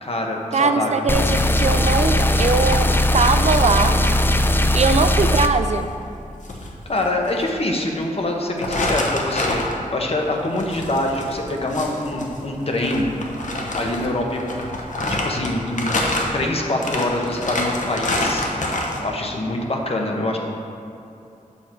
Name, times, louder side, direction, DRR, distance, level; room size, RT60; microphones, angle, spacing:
voice 1, 0.0-0.9 6.9-13.1 13.7-14.5 14.7-14.8 15.1-15.9 16.3-18.5 19.0-20.4, left 1 dB, 45° left, 1 dB, 1.1 m, -24 dB
voice 2, 0.5-4.0 4.7-5.9, right 4 dB, 50° right, 8 dB, 0.4 m, -21 dB
sound 1, 1.1-5.5, left 1 dB, 15° left, 0.3 m, -18 dB
sound 2, 2.7-5.1 5.3-5.5 5.8-6.0 6.4-7.5 7.9-8.0 8.6-19.0, left 1 dB, 65° left, 1.1 m, -27 dB
8.3 x 6.3 x 4.5 m, 2.7 s
wide cardioid pair, 115°, 14 cm